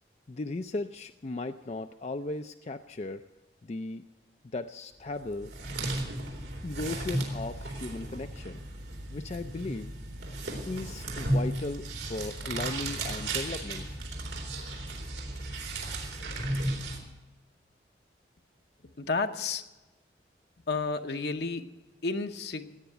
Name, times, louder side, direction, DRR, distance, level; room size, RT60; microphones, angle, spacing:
voice 1, 0.3-3.2 3.6-4.0 4.5-5.5 6.6-8.6 9.1-9.9 10.7-13.9, left 2 dB, 40° left, 7 dB, 0.4 m, -36 dB
sound 1, 5.2-17.0, right 1 dB, 85° right, 3.7 m, -34 dB
voice 2, 19.0-19.7 20.7-21.7 22.0-22.8, left 4 dB, 70° left, 5 dB, 0.9 m, -31 dB
17.5 x 9.6 x 7.9 m, 1.1 s
head